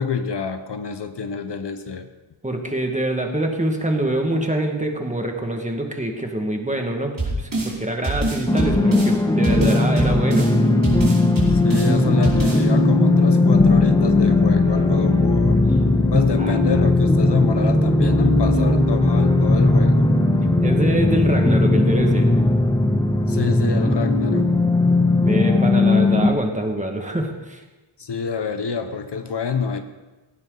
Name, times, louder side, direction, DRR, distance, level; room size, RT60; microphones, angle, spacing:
voice 1, 0.0-2.1 11.5-15.7 16.1-20.1 23.3-24.5 28.0-29.8, left 5 dB, 55° left, 8 dB, 1.1 m, -27 dB
voice 2, 2.4-10.8 16.4-16.6 20.6-22.3 25.2-27.6, right 1 dB, 15° right, 3 dB, 2.0 m, -25 dB
sound 1, 7.2-7.7 8.0-9.1 9.4-10.5 10.8-11.9 12.2-12.6, right 2 dB, 45° right, 5.0 m, -24 dB
sound 2, 8.5-26.3, left 2 dB, 10° left, 1.3 m, -17 dB
18.5 x 16.0 x 4.1 m, 1.1 s
wide cardioid pair, 125°, 48 cm